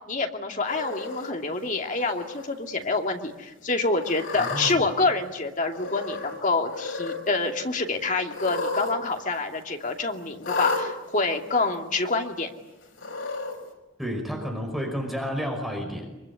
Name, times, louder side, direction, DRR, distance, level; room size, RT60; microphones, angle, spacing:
voice 1, 0.1-12.5, left 3 dB, 40° left, 3 dB, 2.5 m, -27 dB
Cat, 0.7-1.3 2.0-2.4 2.8-2.9 4.0-4.7 5.7-6.4 6.6-7.2 8.3-8.9 9.2-9.3 10.4-10.8 11.7-11.8 12.9-13.5, left 3 dB, 75° left, 5.9 m, -31 dB
voice 2, 4.4-4.9 14.0-16.1, equal, ahead, 1 dB, 5.3 m, -31 dB
24.5 x 24.0 x 9.9 m, 1.0 s
head